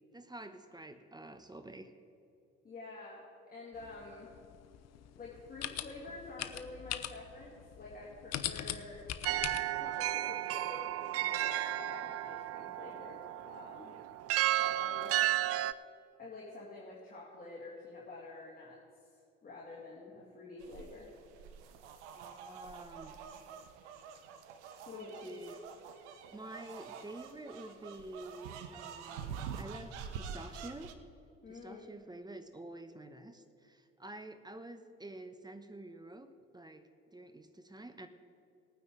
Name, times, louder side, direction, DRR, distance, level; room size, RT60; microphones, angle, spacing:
voice 1, 0.1-1.9 22.1-23.2 24.9-25.6 26.3-30.9 31.5-38.1, right 2 dB, 10° right, 8 dB, 1.0 m, -49 dB
voice 2, 2.6-4.3 5.2-9.1 9.8-14.0 14.6-15.4 16.2-18.8 19.4-21.1 24.9-25.4 31.4-31.9, left 3 dB, 25° left, -4 dB, 2.4 m, -48 dB
sound 1, 3.7-9.6, left 11 dB, 50° left, 0.7 m, -42 dB
sound 2, 9.2-15.7, right 14 dB, 45° right, 0.4 m, -33 dB
sound 3, 20.6-30.9, right 7 dB, 75° right, 0.8 m, -47 dB
18.5 x 9.4 x 3.8 m, 2.7 s
hypercardioid pair, 50°, 35 cm